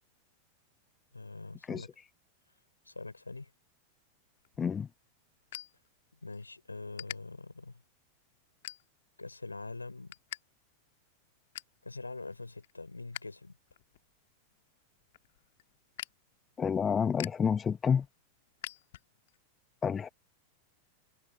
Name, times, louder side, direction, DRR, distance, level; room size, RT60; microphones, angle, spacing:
voice 1, 1.1-1.9 2.8-3.5 6.2-7.8 9.2-10.1 11.8-13.6, left 3 dB, 80° left, 5.1 m, -43 dB
sound 1, 4.4-6.4 6.7-7.2 7.7-8.0 8.5-9.2 9.6-10.4 10.7-10.8 11.2-11.8 12.3-13.2 13.6-19.4, left 15 dB, 55° left, 1.9 m, -46 dB
voice 2, 4.6-4.9 16.6-18.1 19.8-20.1, left 7 dB, 20° left, 1.0 m, -29 dB
figure-of-eight pair, 90°, 0 cm